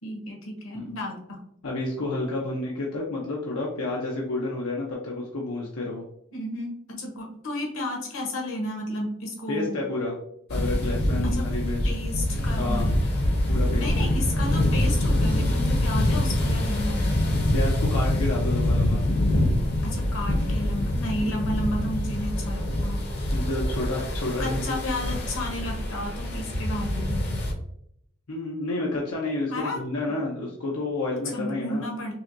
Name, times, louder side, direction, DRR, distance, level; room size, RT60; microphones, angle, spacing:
voice 1, 0.0-1.4 6.3-9.8 11.2-11.4 11.8-12.9 13.8-17.1 19.8-23.0 24.4-27.4 29.5-29.8 31.3-32.1, left 1 dB, 65° left, 0 dB, 1.1 m, -32 dB
voice 2, 1.6-6.0 9.5-10.2 10.5-11.9 12.6-12.9 13.5-14.1 17.5-19.0 21.2-21.3 23.3-24.8 28.3-31.9, left 2 dB, 85° left, -3 dB, 0.7 m, -30 dB
sound 1, 10.5-27.5, left 1 dB, 50° left, 0.8 m, -25 dB
5.4 x 2.2 x 2.7 m, 0.73 s
head